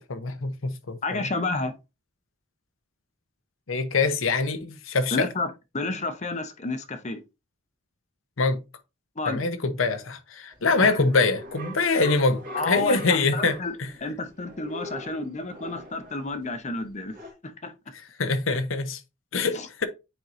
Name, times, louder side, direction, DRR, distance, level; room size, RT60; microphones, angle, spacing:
voice 1, 0.1-1.3 3.7-5.3 8.4-8.6 9.3-13.9 18.2-19.0 19.3-19.9, left 3 dB, 80° left, 0.9 m, -24 dB
voice 2, 1.0-1.7 5.1-7.2 9.2-9.4 10.8-11.1 11.8-12.1 12.5-13.8 14.0-17.2 17.4-17.7 19.5-19.7, left 3 dB, 35° left, 0.8 m, -30 dB
sound 1, 10.5-17.3, equal, 45° right, 1.9 m, -42 dB
9.0 x 4.6 x 2.6 m
head